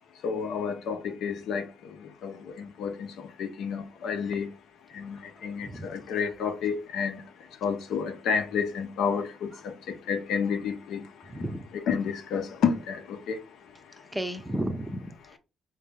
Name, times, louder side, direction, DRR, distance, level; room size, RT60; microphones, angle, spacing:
voice 1, 0.2-1.7 2.0-3.1 3.4-4.5 4.9-7.2 7.6-11.0 11.9-13.4, left 6 dB, 75° left, 0.7 m, -30 dB
voice 2, 5.0-5.9 9.5-9.6 11.2-11.7 14.0-15.4, right 1 dB, 10° right, 0.5 m, -35 dB
3.5 x 2.7 x 3.6 m
supercardioid pair, 75°, 0 cm